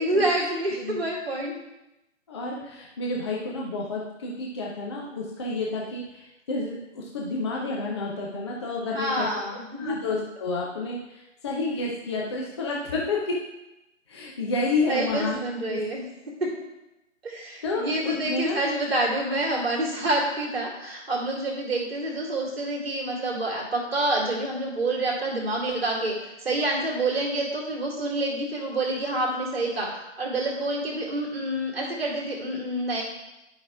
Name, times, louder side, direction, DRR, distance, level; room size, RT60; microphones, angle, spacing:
voice 1, 0.0-1.6 8.9-10.0 14.9-16.0 16.4-16.5 17.2-29.9 30.2-33.0, right 1 dB, 50° right, -3 dB, 2.1 m, -27 dB
voice 2, 2.3-9.3 9.8-13.4 14.1-15.8 17.6-18.6, left 3 dB, 20° left, -3 dB, 0.7 m, -30 dB
10.5 x 5.3 x 3.5 m, 0.93 s
figure-of-eight pair, 140°, 38 cm